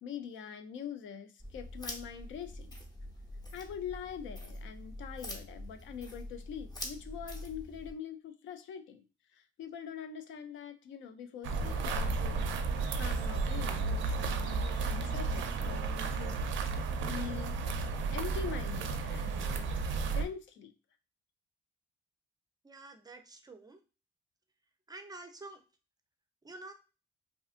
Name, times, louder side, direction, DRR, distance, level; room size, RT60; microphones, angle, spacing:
voice 1, 0.0-2.7 3.5-9.0 9.3-12.5 13.0-16.5 17.0-17.6 18.1-19.8 20.1-20.7, left 8 dB, 75° left, 9 dB, 0.4 m, -44 dB
sound 1, 1.4-7.9, left 1 dB, 20° left, 0.8 m, -45 dB
sound 2, 11.4-20.2, right 4 dB, 75° right, 0.4 m, -33 dB
voice 2, 22.6-23.8 24.9-25.6 26.4-26.7, right 2 dB, 20° right, 6 dB, 0.4 m, -48 dB
2.7 x 2.4 x 2.4 m, 0.32 s
cardioid pair, 90°, 20 cm